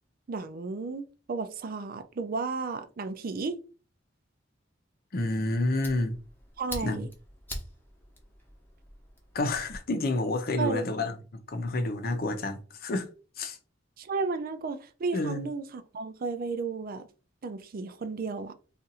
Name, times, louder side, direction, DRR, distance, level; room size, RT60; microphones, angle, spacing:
voice 1, 0.3-3.6 6.6-7.1 10.6-10.9 14.0-17.1 17.4-18.5, right 4 dB, 50° right, 0.4 m, -33 dB
voice 2, 5.1-6.2 6.8-7.1 9.3-11.2 11.5-13.1 13.4-13.6 15.1-15.5, left 2 dB, 50° left, 0.6 m, -29 dB
Fire, 5.2-9.8, left 1 dB, 10° left, 0.9 m, -44 dB
2.6 x 2.5 x 4.0 m
head